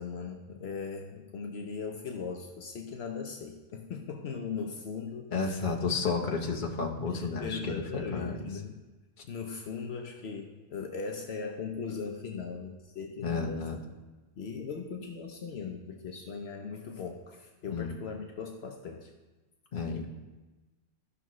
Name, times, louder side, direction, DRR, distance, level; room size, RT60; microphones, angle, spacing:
voice 1, 0.0-6.3 7.1-8.8 9.3-13.7 14.3-19.1, left 5 dB, 75° left, 3 dB, 1.0 m, -39 dB
voice 2, 5.3-8.5 13.2-13.8 17.7-17.9 19.7-20.1, left 4 dB, 50° left, 1 dB, 1.1 m, -32 dB
13.5 x 5.9 x 3.1 m, 1.2 s
omnidirectional pair, 1.1 m